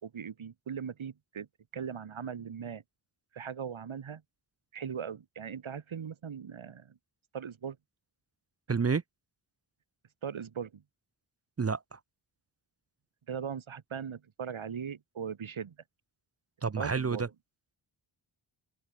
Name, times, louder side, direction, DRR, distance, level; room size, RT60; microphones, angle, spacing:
voice 1, 0.0-1.5 1.7-2.8 3.3-4.2 4.7-7.0 7.3-7.8 10.2-10.8 13.3-15.8 16.8-17.3, right 7 dB, 70° right, 3.6 m, -39 dB
voice 2, 8.7-9.0 11.6-12.0 16.6-17.3, right 5 dB, 30° right, 0.8 m, -29 dB
open air
wide cardioid pair, 150°, 49 cm